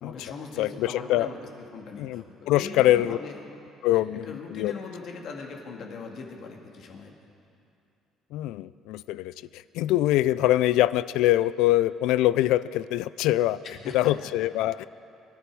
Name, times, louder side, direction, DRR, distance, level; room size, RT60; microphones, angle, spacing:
voice 1, 0.0-3.4 3.9-7.3 13.6-14.1 14.4-14.5, left 4 dB, 50° left, 1 dB, 1.9 m, -40 dB
voice 2, 0.6-1.3 2.0-3.2 3.8-4.7 8.3-13.6 13.9-14.9, left 14 dB, 85° left, 18 dB, 0.4 m, -24 dB
25.0 x 11.5 x 4.7 m, 2.6 s
cardioid pair, 160°, 0 cm